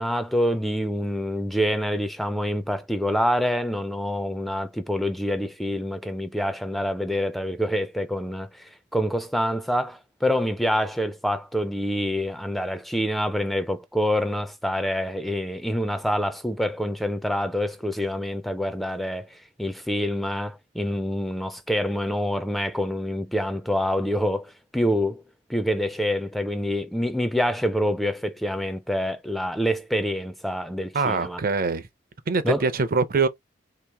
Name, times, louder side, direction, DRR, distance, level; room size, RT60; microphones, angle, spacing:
voice 1, 0.0-25.2 25.5-31.4 32.4-32.6, equal, ahead, 0.3 m, -26 dB
voice 2, 30.9-31.9 32.3-33.3, right 4 dB, 50° right, 0.5 m, -23 dB
3.1 x 2.9 x 3.4 m
head